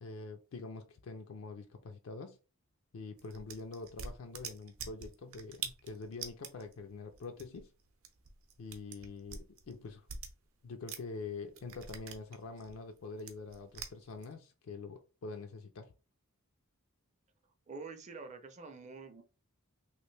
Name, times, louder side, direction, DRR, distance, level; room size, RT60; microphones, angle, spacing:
voice 1, 0.0-2.4 2.9-7.7 8.6-10.1 10.6-15.9, left 3 dB, 65° left, 0.4 m, -45 dB
sound 1, 3.2-11.2 11.5-14.3, right 6 dB, 70° right, 0.6 m, -46 dB
voice 2, 17.7-19.2, right 4 dB, 35° right, 0.5 m, -47 dB
3.2 x 2.5 x 3.2 m
head